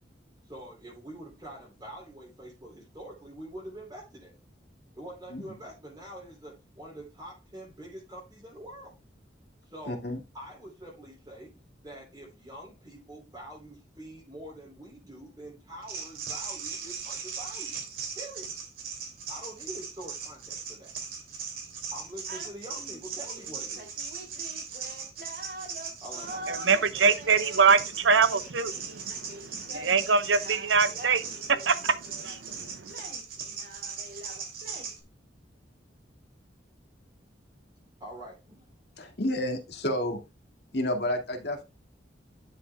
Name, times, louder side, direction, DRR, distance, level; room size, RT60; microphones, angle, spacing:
voice 1, 0.4-4.3 4.9-8.9 9.6-10.0 10.3-11.5 11.8-17.8 18.1-18.5 19.3-20.9 21.9-23.9 26.0-26.6 38.0-38.7, right 1 dB, 20° right, 3.2 m, -45 dB
voice 2, 9.9-10.2 39.0-40.2 40.7-41.6, left 1 dB, 60° left, 2.1 m, -30 dB
sound 1, 15.8-35.0, right 5 dB, 50° right, 2.9 m, -38 dB
voice 3, 26.5-32.0 32.2-32.9, right 5 dB, 80° right, 0.8 m, -24 dB
11.0 x 6.6 x 2.3 m
head